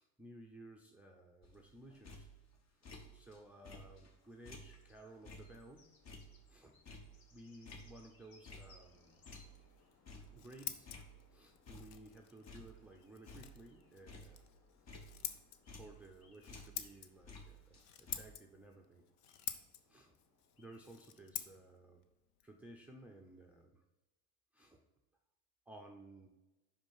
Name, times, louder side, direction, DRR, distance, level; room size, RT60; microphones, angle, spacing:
voice 1, 0.0-2.3 2.7-5.9 6.5-6.8 7.3-9.2 10.3-10.9 11.3-14.4 14.8-15.0 15.8-19.0 19.9-20.1 20.6-22.0 22.4-23.8 24.5-24.8 25.7-26.3, right 1 dB, 5° right, 1 dB, 0.6 m, -57 dB
sound 1, 1.4-3.4 3.7-9.0 9.3-11.4 11.7-12.2 12.5-16.2 16.5-18.2, left 1 dB, 35° left, 1.3 m, -55 dB
sound 2, 3.2-21.3, left 3 dB, 50° left, 1.6 m, -71 dB
Scissors, 10.1-23.6, left 10 dB, 80° left, 0.8 m, -50 dB
5.5 x 5.1 x 5.5 m, 1.0 s
supercardioid pair, 100°, 45 cm